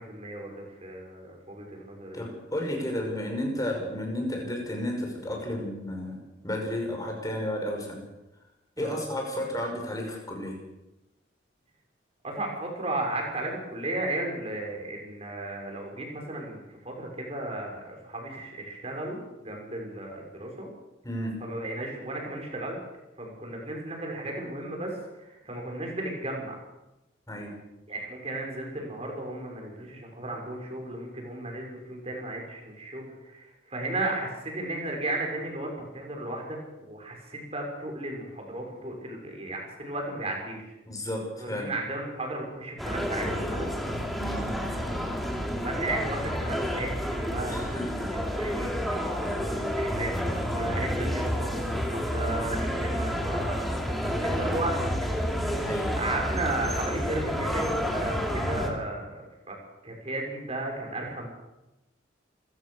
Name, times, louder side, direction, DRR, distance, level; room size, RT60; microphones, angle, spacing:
voice 1, 0.0-2.2 8.8-9.0 12.2-20.7 21.4-22.8 23.2-26.5 27.9-40.7 41.4-43.7 45.6-48.8 49.2-51.6 51.9-54.9 56.0-59.6 59.8-61.3, right 2 dB, 35° right, 1 dB, 6.5 m, -35 dB
voice 2, 2.1-6.2 6.4-8.0 8.8-10.6 21.0-21.4 27.3-27.5 40.9-41.7 44.2-44.4 47.5-48.1 49.2-49.4 55.5-56.0, left 1 dB, 20° left, 1 dB, 5.8 m, -32 dB
sound 1, 42.8-58.7, equal, ahead, 3.1 m, -29 dB
28.5 x 16.0 x 6.6 m, 0.98 s
head